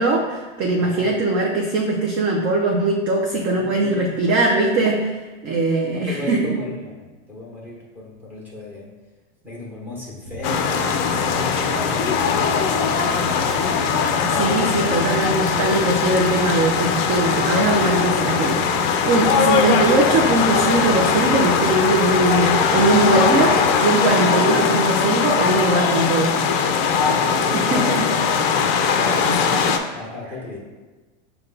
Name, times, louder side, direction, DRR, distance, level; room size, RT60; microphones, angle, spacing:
voice 1, 0.0-5.1 5.4-6.6 14.2-26.4 27.5-28.2 29.3-29.8, right 2 dB, 30° right, -1 dB, 0.4 m, -21 dB
voice 2, 0.8-1.2 3.5-4.1 5.9-8.9 9.4-13.6 24.6-24.8 27.0-28.1 28.5-30.6, left 2 dB, 5° right, -3 dB, 1.0 m, -35 dB
sound 1, 10.2-23.8, equal, 70° right, 0.9 m, -36 dB
sound 2, 10.4-29.8, left 6 dB, 50° left, 0.4 m, -20 dB
5.3 x 2.3 x 3.8 m, 1.3 s
supercardioid pair, 130°, 39 cm